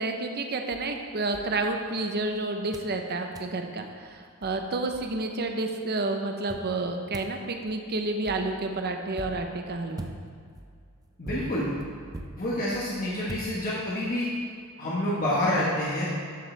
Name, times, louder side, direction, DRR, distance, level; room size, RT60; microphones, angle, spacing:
voice 1, 0.0-10.1, right 2 dB, 45° right, 4 dB, 0.8 m, -30 dB
sound 1, 0.7-2.3 2.7-3.0 3.3-3.6 4.1-4.2 4.4-5.5 6.5-14.1, right 1 dB, 15° right, 0.5 m, -44 dB
voice 2, 11.2-11.7 12.4-14.3 14.8-16.2, left 1 dB, 40° left, -7 dB, 1.4 m, -28 dB
12.0 x 7.6 x 3.3 m, 2.2 s
head